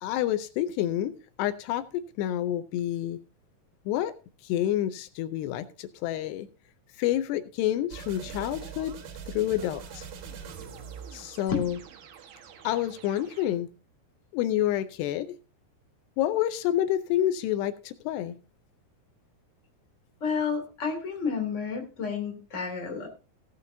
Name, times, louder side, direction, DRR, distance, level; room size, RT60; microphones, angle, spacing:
voice 1, 0.0-3.2 3.9-4.1 4.4-6.5 7.0-9.0 9.3-10.1 11.1-11.8 12.6-13.7 14.3-15.4 16.2-18.4, left 12 dB, 85° left, 11 dB, 2.8 m, -28 dB
sound 1, 7.9-13.5, right 7 dB, 65° right, 3.2 m, -43 dB
voice 2, 20.2-23.1, left 5 dB, 20° left, 3 dB, 2.5 m, -31 dB
17.0 x 9.4 x 2.7 m, 0.32 s
omnidirectional pair, 4.8 m